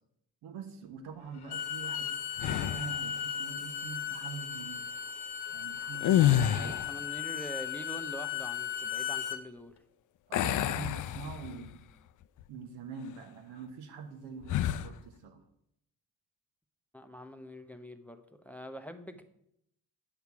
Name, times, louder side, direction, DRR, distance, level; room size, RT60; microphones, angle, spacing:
voice 1, 0.4-4.9 5.5-6.8 10.3-11.9 12.5-15.4, right 5 dB, 70° right, 6 dB, 1.1 m, -44 dB
Bowed string instrument, 1.3-9.4, left 8 dB, 65° left, 1.0 m, -36 dB
sound 1, 2.4-3.0 5.9-7.0 10.3-11.7 12.2-12.4 14.4-14.9, left 12 dB, 50° left, 0.5 m, -28 dB
voice 2, 6.0-9.8 16.9-19.2, right 1 dB, 5° left, 8 dB, 0.7 m, -45 dB
8.1 x 5.9 x 4.7 m, 0.77 s
hypercardioid pair, 45°, 42 cm